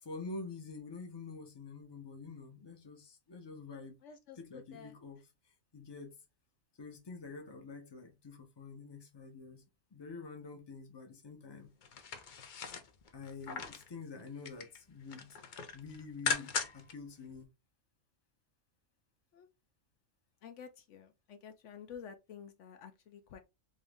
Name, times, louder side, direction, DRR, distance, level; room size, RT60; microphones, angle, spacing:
voice 1, 0.0-4.0 4.4-5.2 5.7-6.2 6.8-9.6 9.9-11.7 13.1-15.4 15.7-17.5, left 4 dB, 25° left, 0.8 m, -47 dB
voice 2, 4.0-4.9 19.3-19.5 20.4-23.4, left 7 dB, 70° left, 0.9 m, -51 dB
sound 1, 11.8-13.9 14.3-14.8 15.1-16.9 17.3-17.4, left 5 dB, 55° left, 0.6 m, -39 dB
3.7 x 2.7 x 3.4 m
omnidirectional pair, 1.3 m